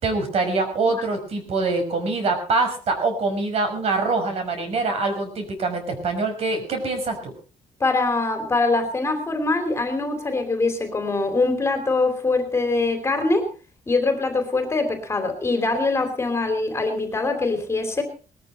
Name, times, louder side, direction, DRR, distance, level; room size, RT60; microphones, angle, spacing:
voice 1, 0.0-7.3, right 3 dB, 50° right, 6 dB, 5.7 m, -24 dB
voice 2, 7.8-13.5 13.9-18.0, left 3 dB, 20° left, 6 dB, 3.1 m, -23 dB
20.0 x 13.5 x 4.4 m, 0.36 s
cardioid pair, 165°, 13 cm